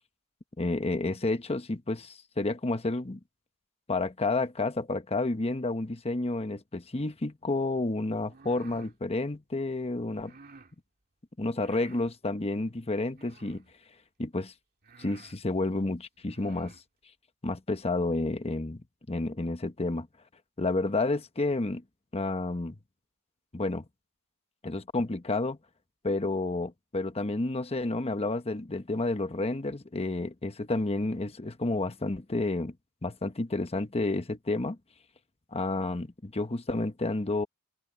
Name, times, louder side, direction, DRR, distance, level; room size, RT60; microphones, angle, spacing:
voice 1, 0.6-3.2 3.9-10.3 11.4-13.6 14.2-14.5 15.0-16.7 17.4-20.1 20.6-21.8 22.1-22.8 23.5-23.9 24.6-25.6 26.0-32.7 33.0-34.8 35.5-37.5, left 2 dB, 25° left, 1.0 m, -30 dB
sound 1, 8.2-9.0 10.2-10.7 11.6-12.1 13.1-13.7 14.4-14.5 14.8-15.4 16.2-16.8, right 4 dB, 45° right, 2.2 m, -53 dB
head